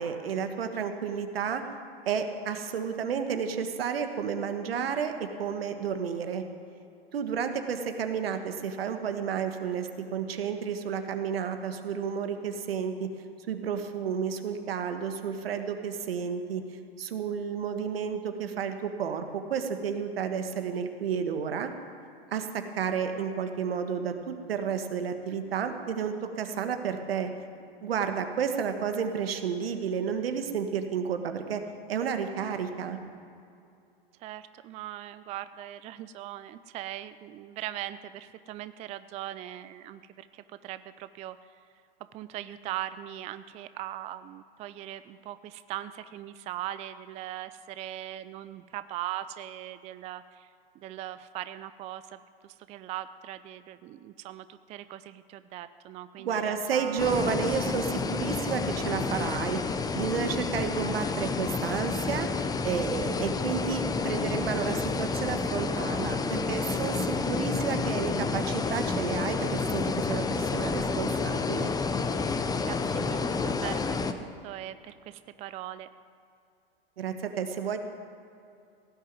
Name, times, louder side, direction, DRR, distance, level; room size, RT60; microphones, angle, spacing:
voice 1, 0.0-1.6 2.0-6.4 7.1-13.1 13.5-16.6 17.0-21.7 22.3-27.3 27.8-31.6 31.9-33.0 56.2-59.6 59.9-62.3 62.6-71.7 77.0-77.8, right 7 dB, 75° right, 7 dB, 1.5 m, -31 dB
voice 2, 34.2-41.5 42.1-50.5 50.8-57.1 72.6-75.9, right 13 dB, 25° right, 13 dB, 0.4 m, -40 dB
sound 1, 57.0-74.1, left 4 dB, 10° left, 0.8 m, -30 dB
17.0 x 6.7 x 9.3 m, 2.5 s
hypercardioid pair, 105°, 30 cm